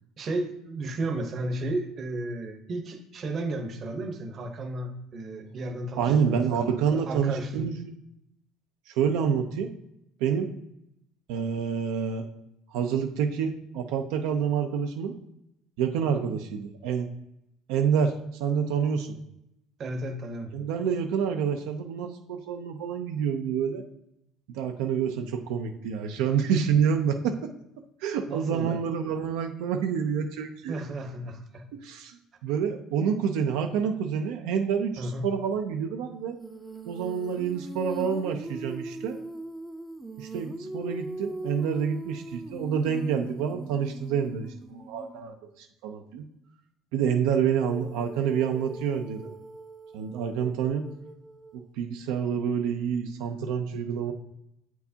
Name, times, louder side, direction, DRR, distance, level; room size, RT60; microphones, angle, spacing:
voice 1, 0.2-7.7 19.8-20.5 28.3-28.8 30.7-31.6 35.0-35.3, right 2 dB, 35° right, 5 dB, 0.8 m, -33 dB
voice 2, 6.0-7.7 8.9-9.7 10.2-10.5 11.3-12.2 12.7-15.1 15.8-17.1 17.7-18.1 18.4-19.2 20.5-23.8 24.5-27.5 28.0-30.8 31.8-36.4 36.9-39.2 40.2-46.2 46.9-49.3 49.9-50.8 51.8-54.1, right 7 dB, 80° right, 4 dB, 0.5 m, -28 dB
Female singing, 36.4-45.3 47.5-51.7, right 2 dB, 10° right, 0.5 m, -41 dB
7.9 x 4.5 x 2.8 m, 0.82 s
cardioid pair, 140°, 0 cm